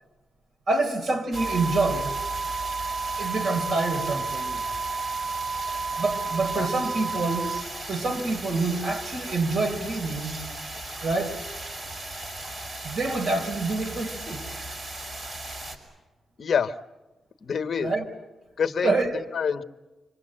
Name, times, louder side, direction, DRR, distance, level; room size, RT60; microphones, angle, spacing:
voice 1, 0.7-2.1 3.2-4.7 6.0-7.6 7.9-10.4 11.0-11.4 12.8-14.4 17.8-18.1 18.8-19.2, right 3 dB, 60° right, 4.0 m, -27 dB
sound 1, 1.3-15.8, right 1 dB, 45° right, 5.2 m, -37 dB
sound 2, 1.4-7.6, right 4 dB, 10° left, 1.4 m, -31 dB
voice 2, 16.4-16.8 17.4-17.9 18.6-19.6, left 6 dB, 55° left, 1.1 m, -27 dB
26.5 x 26.0 x 7.7 m
cardioid pair, 90°, 0 cm